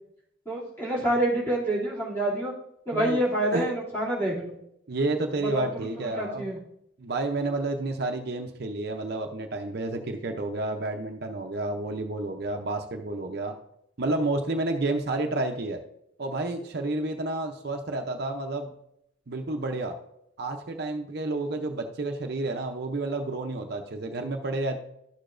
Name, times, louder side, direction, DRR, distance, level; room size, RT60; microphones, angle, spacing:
voice 1, 0.5-2.5 2.9-4.5 5.5-6.6, right 1 dB, 10° left, -7 dB, 2.6 m, -27 dB
voice 2, 4.9-6.5 7.0-13.5 14.0-15.8 16.2-18.7 19.3-19.9 20.4-24.8, right 2 dB, 50° right, 4 dB, 0.6 m, -30 dB
12.0 x 6.7 x 2.5 m, 0.78 s
head